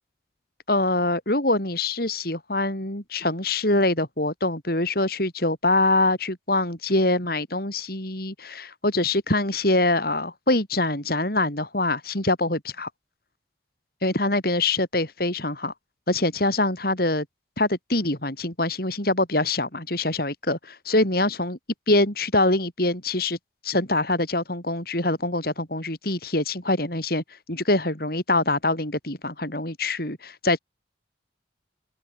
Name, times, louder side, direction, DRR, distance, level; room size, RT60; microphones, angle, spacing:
voice 1, 0.7-12.9 14.0-15.7 16.1-17.2 17.6-21.6 21.9-23.4 23.6-27.2 27.5-30.6, left 2 dB, 55° left, 5.1 m, -24 dB
head